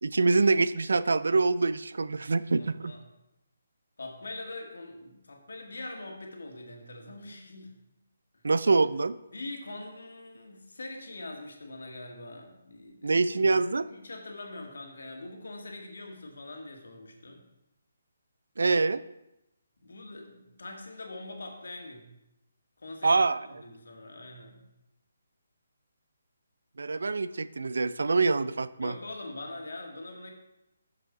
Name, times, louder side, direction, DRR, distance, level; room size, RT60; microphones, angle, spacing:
voice 1, 0.0-2.9 8.4-9.2 13.0-13.9 18.6-19.0 23.0-23.4 26.8-28.9, right 3 dB, 75° right, 16 dB, 0.4 m, -25 dB
voice 2, 2.6-3.0 4.0-7.7 8.3-8.4 9.3-13.2 13.9-17.5 19.8-22.1 22.8-23.2 23.5-24.6 28.8-30.3, left 2 dB, 75° left, 2 dB, 1.8 m, -43 dB
6.8 x 6.6 x 4.8 m, 0.90 s
figure-of-eight pair, 150°, 0 cm